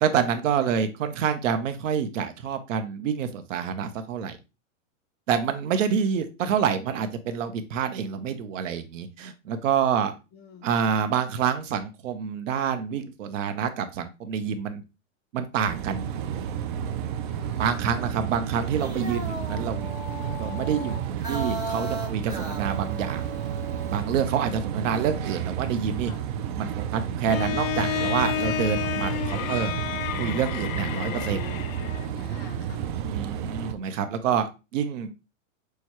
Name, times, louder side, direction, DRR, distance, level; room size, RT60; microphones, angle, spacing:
voice 1, 0.0-4.4 5.3-10.1 10.6-14.8 15.3-16.1 17.6-19.9 20.4-21.0 21.3-23.2 23.9-26.1 26.6-29.7 30.2-31.4 33.0-35.1, right 7 dB, 70° right, 9 dB, 0.8 m, -27 dB
voice 2, 10.3-10.7 17.3-18.1 26.0-26.2 32.1-32.9, left 4 dB, 25° left, 5 dB, 0.6 m, -47 dB
sound 1, 15.7-33.7, right 9 dB, 40° right, 0.4 m, -31 dB
sound 2, 18.6-24.1, right 2 dB, 10° right, 1.0 m, -36 dB
Bowed string instrument, 27.3-32.2, left 11 dB, 80° left, 0.5 m, -30 dB
6.4 x 2.3 x 3.0 m, 0.28 s
hypercardioid pair, 140°, 40 cm